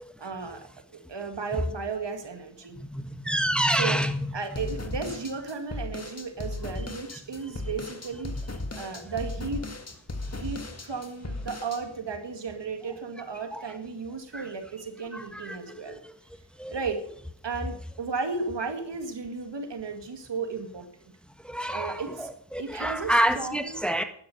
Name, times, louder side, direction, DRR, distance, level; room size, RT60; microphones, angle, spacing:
voice 1, 0.2-0.7 1.1-2.8 3.6-4.0 4.3-8.4 8.7-9.8 10.4-16.0 16.7-17.0 17.4-20.9 21.7-22.3 22.6-23.8, right 4 dB, 70° right, 6 dB, 2.1 m, -34 dB
voice 2, 2.9-4.1 15.3-15.4 16.6-16.8 21.5-22.0 22.5-24.0, right 1 dB, ahead, 7 dB, 1.4 m, -26 dB
sound 1, 4.5-11.8, left 2 dB, 35° left, 2.0 m, -36 dB
12.0 x 10.5 x 6.7 m, 0.65 s
cardioid pair, 50°, 44 cm